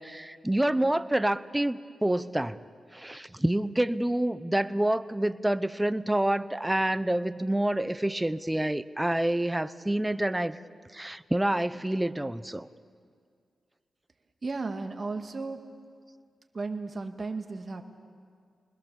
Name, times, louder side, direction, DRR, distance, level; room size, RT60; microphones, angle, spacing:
voice 1, 0.0-2.6 2.9-10.6 10.9-12.7, right 1 dB, 10° right, 14 dB, 0.7 m, -27 dB
voice 2, 14.4-15.6 16.5-17.8, right 3 dB, 45° right, 5 dB, 1.9 m, -34 dB
29.0 x 20.5 x 7.0 m, 2.2 s
cardioid pair, 65°, 0 cm